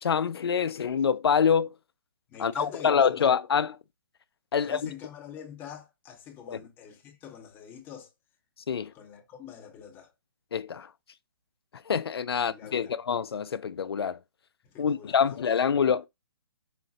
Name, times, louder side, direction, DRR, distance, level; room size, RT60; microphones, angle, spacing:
voice 1, 0.0-1.7 2.4-3.8 4.5-4.9 6.5-6.6 8.7-8.9 10.5-10.9 11.9-14.2 14.8-16.1, left 7 dB, 85° left, 0.4 m, -26 dB
voice 2, 2.3-3.3 4.5-8.1 8.9-10.1 12.3-13.0 14.6-15.7, left 8 dB, 15° left, 0.8 m, -45 dB
5.0 x 2.2 x 3.8 m
hypercardioid pair, 155°, 13 cm